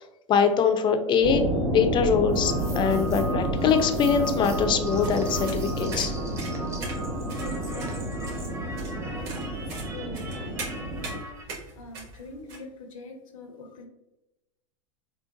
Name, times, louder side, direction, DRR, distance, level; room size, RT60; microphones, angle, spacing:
voice 1, 0.3-6.1, left 6 dB, 30° left, 7 dB, 0.4 m, -23 dB
sound 1, 1.2-11.2, right 1 dB, 70° right, 1.4 m, -30 dB
sound 2, 2.3-11.5, right 1 dB, 15° right, 0.7 m, -40 dB
sound 3, 4.7-12.6, right 3 dB, 55° right, 1.3 m, -41 dB
voice 2, 7.4-8.5 9.0-9.3 9.9-11.2 11.8-12.7 12.9-13.9, left 2 dB, 80° left, 4 dB, 0.7 m, -43 dB
3.9 x 2.2 x 2.5 m, 0.98 s
hypercardioid pair, 100°, 17 cm